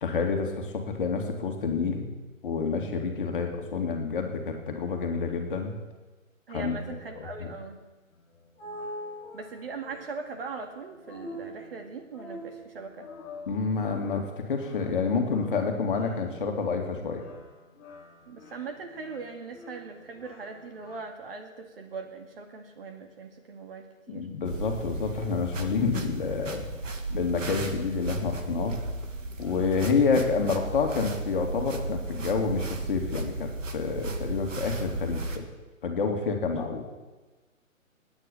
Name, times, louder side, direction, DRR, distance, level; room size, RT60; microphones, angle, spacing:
voice 1, 0.0-2.1 2.4-5.8 6.5-7.5 13.5-17.2 24.1-26.6 27.1-28.8 29.4-35.5 35.8-36.8, left 5 dB, 40° left, 3 dB, 2.5 m, -28 dB
voice 2, 6.5-7.8 9.3-13.1 18.3-24.3, right 4 dB, 45° right, 5 dB, 2.1 m, -40 dB
sound 1, 8.1-21.0, left 1 dB, 5° left, 0.8 m, -46 dB
sound 2, 24.5-35.4, right 2 dB, 65° right, 2.1 m, -35 dB
18.5 x 9.4 x 7.1 m, 1.2 s
hypercardioid pair, 160°, 41 cm